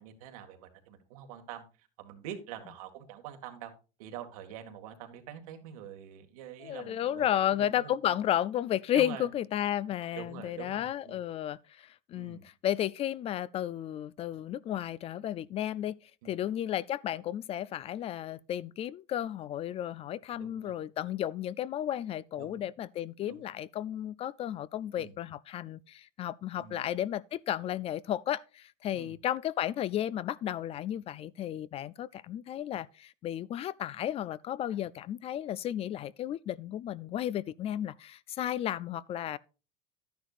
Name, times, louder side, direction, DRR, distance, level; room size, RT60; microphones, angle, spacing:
voice 1, 0.0-3.7 4.0-8.2 8.9-9.3 10.2-11.2 12.1-12.5 16.2-16.3 20.4-20.7 22.4-22.7 23.2-23.4 24.9-25.1 26.6-26.8 28.9-29.2, right 9 dB, 80° right, 2.0 m, -45 dB
voice 2, 6.6-16.0 16.2-39.4, left 11 dB, 35° left, 0.3 m, -33 dB
11.5 x 10.0 x 2.5 m
supercardioid pair, 125°, 18 cm